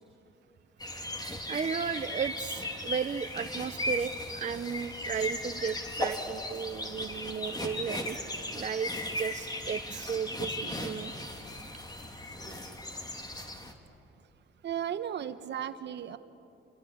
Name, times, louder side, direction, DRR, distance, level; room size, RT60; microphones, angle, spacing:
sound 1, 0.8-13.7, left 1 dB, 20° left, 2.9 m, -37 dB
voice 1, 1.5-8.2 8.5-11.1, right 7 dB, 40° right, 8 dB, 0.7 m, -34 dB
voice 2, 14.6-16.2, right 9 dB, 60° right, 11 dB, 1.2 m, -35 dB
29.0 x 22.0 x 8.7 m, 2.7 s
cardioid pair, 90°, 20 cm